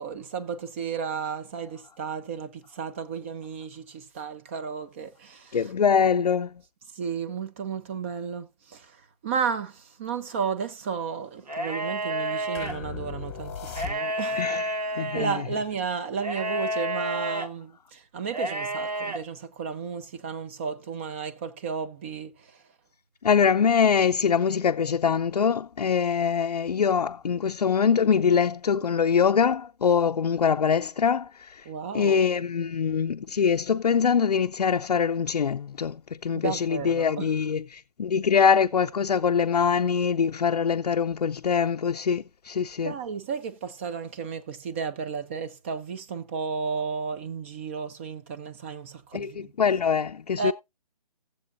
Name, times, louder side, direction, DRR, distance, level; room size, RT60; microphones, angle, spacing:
voice 1, 0.0-5.7 6.9-14.4 14.9-22.6 31.6-32.2 36.3-37.3 42.8-49.5 50.4-50.5, right 6 dB, 20° right, 0.6 m, -33 dB
voice 2, 5.5-6.5 14.4-14.6 15.0-15.3 23.2-31.7 31.9-42.9 49.1-50.5, left 6 dB, 80° left, 0.5 m, -23 dB
sound 1, 11.4-12.7 13.7-15.4 16.2-17.5 18.3-19.2, right 1 dB, 90° right, 1.8 m, -30 dB
sound 2, 12.6-14.4, left 7 dB, 25° left, 1.1 m, -38 dB
16.0 x 7.7 x 2.5 m
hypercardioid pair, 160°, 20 cm